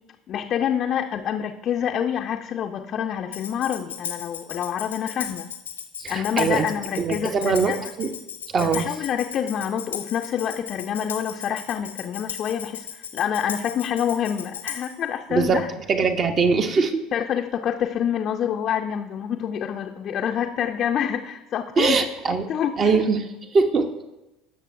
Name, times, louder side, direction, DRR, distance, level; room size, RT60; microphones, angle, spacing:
voice 1, 0.3-5.5 6.1-7.9 8.6-15.7 17.1-23.0, left 9 dB, 45° left, 4 dB, 0.5 m, -27 dB
Tambourine, 3.3-15.0, left 8 dB, 80° left, 0.8 m, -36 dB
voice 2, 6.0-6.7 7.0-8.1 8.5-8.9 15.3-15.6 15.9-17.0 21.8-22.5 22.8-23.9, right 5 dB, 35° right, 7 dB, 1.0 m, -22 dB
18.0 x 6.6 x 2.6 m, 0.98 s
figure-of-eight pair, 65°, 0 cm